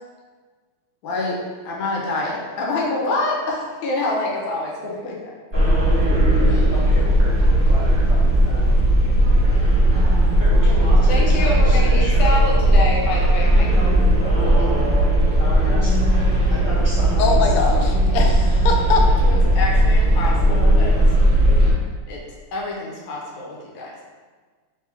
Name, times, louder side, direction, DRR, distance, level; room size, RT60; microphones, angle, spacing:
voice 1, 1.0-4.7 11.1-14.0 19.2-21.1 22.1-22.2 22.5-24.0, left 2 dB, 70° left, -3 dB, 1.4 m, -26 dB
sound 1, 5.5-21.7, right 1 dB, 30° right, 1.3 m, -16 dB
voice 2, 6.4-8.8 10.4-12.6 15.4-16.0 16.5-17.8, left 1 dB, 45° right, -10 dB, 1.0 m, -32 dB
voice 3, 17.2-19.0, left 4 dB, 85° left, 1 dB, 1.5 m, -22 dB
3.9 x 3.3 x 3.3 m, 1.4 s
omnidirectional pair, 2.4 m